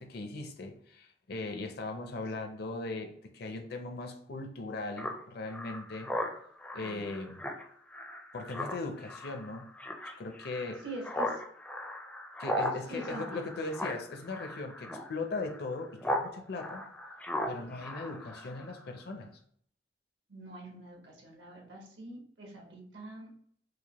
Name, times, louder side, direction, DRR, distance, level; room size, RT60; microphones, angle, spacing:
voice 1, 0.0-6.1 6.7-7.4 8.3-9.7 10.2-10.8 12.4-16.9 17.5-19.3, left 3 dB, 65° left, 0.6 m, -39 dB
Speech synthesizer, 5.0-16.3 16.6-18.8, left 1 dB, 10° left, 0.4 m, -38 dB
voice 2, 6.8-7.1 10.8-11.4 12.9-13.5 17.6-18.2 20.3-23.3, right 1 dB, 80° right, 1.2 m, -45 dB
4.8 x 2.1 x 2.9 m
head